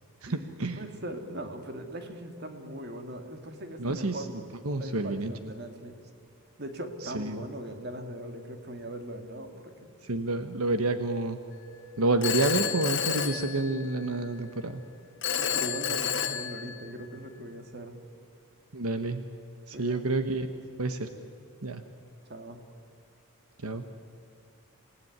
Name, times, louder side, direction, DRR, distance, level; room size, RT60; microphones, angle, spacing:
voice 1, 0.2-0.8 3.8-5.5 7.0-7.4 10.0-11.4 12.0-14.8 18.7-19.2 19.7-20.5 20.8-21.1 21.6-21.8 23.6-23.8, right 2 dB, 80° right, 8 dB, 1.3 m, -29 dB
voice 2, 0.8-4.4 4.8-6.0 6.6-9.9 15.3-18.0 19.7-20.0 22.2-22.6, right 1 dB, 45° right, 6 dB, 2.4 m, -40 dB
Telephone, 12.2-14.2 15.2-17.2, left 8 dB, 55° left, 1.5 m, -31 dB
28.0 x 18.5 x 9.6 m, 2.6 s
head